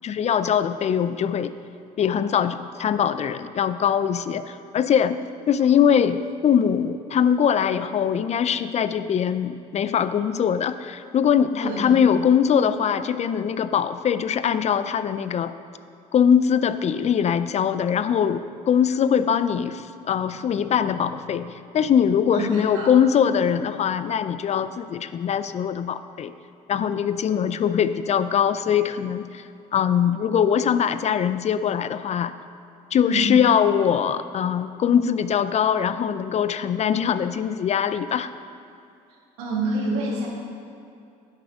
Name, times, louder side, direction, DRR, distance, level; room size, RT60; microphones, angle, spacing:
voice 1, 0.0-1.5 2.0-5.2 5.5-15.5 16.1-26.3 26.7-32.3 32.9-38.3, left 8 dB, 40° left, 12 dB, 0.4 m, -22 dB
voice 2, 22.3-22.9 33.0-33.3 39.4-40.3, right 1 dB, 85° right, -3 dB, 2.1 m, -27 dB
10.5 x 8.6 x 3.6 m, 2.6 s
supercardioid pair, 75°, 17 cm